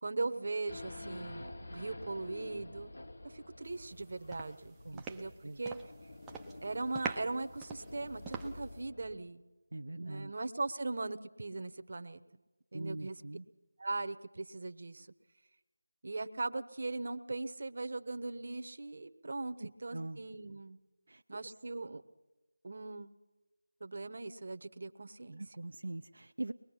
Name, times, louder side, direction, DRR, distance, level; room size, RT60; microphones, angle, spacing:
voice 1, 0.0-2.9 3.2-5.8 6.6-9.4 10.0-12.2 12.7-13.2 13.8-15.1 16.0-20.8 21.3-22.0 22.6-23.1 23.8-25.4, right 3 dB, 50° right, 9 dB, 1.0 m, -39 dB
Race car auto racing / Idling / Accelerating revving vroom, 0.7-9.3, left 2 dB, 60° left, 2.3 m, -49 dB
sound 1, 3.8-4.0 4.3-6.0 6.2-6.6 6.9-8.8, right 5 dB, 5° right, 0.7 m, -43 dB
voice 2, 4.8-5.6 9.7-10.3 12.7-13.5 19.6-20.2 21.1-21.2 25.4-26.5, right 2 dB, 70° right, 6 dB, 0.6 m, -42 dB
23.5 x 21.0 x 5.7 m, 1.1 s
figure-of-eight pair, 170°, 0 cm